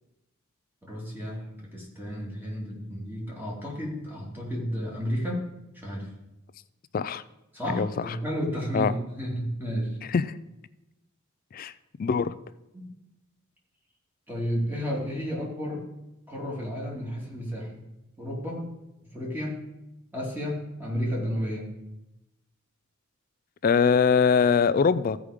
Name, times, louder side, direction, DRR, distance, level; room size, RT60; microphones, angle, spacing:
voice 1, 0.8-5.5 5.7-6.1 7.5-10.0 12.7-12.9 14.3-15.9 16.3-17.8 18.2-18.7 19.1-19.6 20.1-21.7, equal, 10° right, -4 dB, 2.5 m, -32 dB
voice 2, 7.7-8.2 8.7-8.9 10.1-10.2 11.5-11.7 12.0-12.3 23.6-25.2, left 6 dB, 45° left, 15 dB, 0.3 m, -22 dB
15.0 x 5.0 x 4.9 m, 0.94 s
head